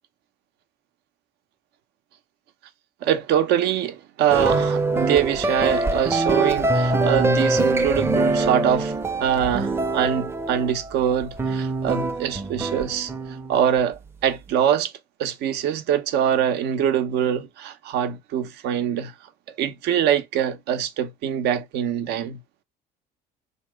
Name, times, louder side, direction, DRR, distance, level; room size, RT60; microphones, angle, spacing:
voice 1, 3.0-8.9 9.2-13.1 13.5-14.9 15.2-19.1 19.6-22.4, right 9 dB, 80° right, 0.8 m, -23 dB
sound 1, 4.3-13.7, right 2 dB, 15° right, 0.5 m, -24 dB
3.8 x 2.9 x 3.4 m
cardioid pair, 110°, 17 cm